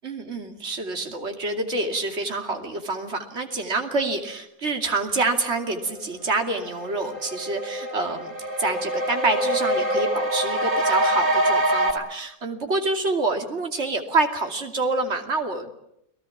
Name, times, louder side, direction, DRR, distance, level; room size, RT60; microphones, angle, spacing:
voice 1, 0.0-15.7, right 3 dB, 50° right, 4 dB, 2.9 m, -27 dB
sound 1, 6.1-6.2 6.6-11.9, right 1 dB, 80° right, 4.8 m, -25 dB
29.5 x 19.5 x 7.3 m, 0.78 s
omnidirectional pair, 1.5 m